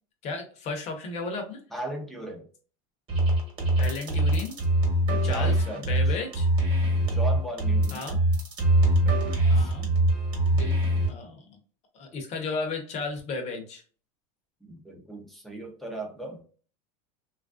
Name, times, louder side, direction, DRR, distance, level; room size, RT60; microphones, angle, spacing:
voice 1, 0.2-1.6 3.8-4.6 5.2-6.5 7.9-8.2 9.5-9.9 10.5-10.8 11.1-11.6 11.9-13.8, left 3 dB, 40° left, 4 dB, 0.8 m, -34 dB
voice 2, 1.7-2.5 5.1-6.0 7.1-8.0 9.0-9.7 14.6-16.4, right 1 dB, ahead, 1 dB, 0.6 m, -37 dB
sound 1, 3.1-11.1, right 1 dB, 30° right, 1.2 m, -23 dB
3.1 x 2.4 x 2.4 m, 0.41 s
supercardioid pair, 145°, 18 cm